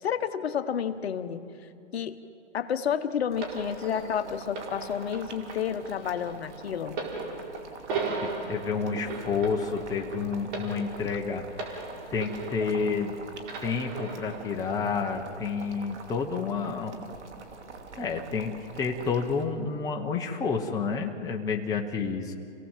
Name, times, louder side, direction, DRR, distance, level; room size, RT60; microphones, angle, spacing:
voice 1, 0.0-1.5 1.9-2.2 2.5-7.0, left 8 dB, 60° left, 10 dB, 1.2 m, -30 dB
Boiling, 3.3-19.4, right 3 dB, 75° right, 2.8 m, -46 dB
sound 1, 3.4-13.1 13.4-14.5 15.3-15.4, right 3 dB, 45° right, 4.7 m, -37 dB
voice 2, 8.5-11.8 12.1-13.2 13.6-16.9 18.0-22.3, left 5 dB, 10° left, 2 dB, 1.1 m, -30 dB
27.0 x 17.0 x 7.4 m, 2.7 s
hypercardioid pair, 145°, 35 cm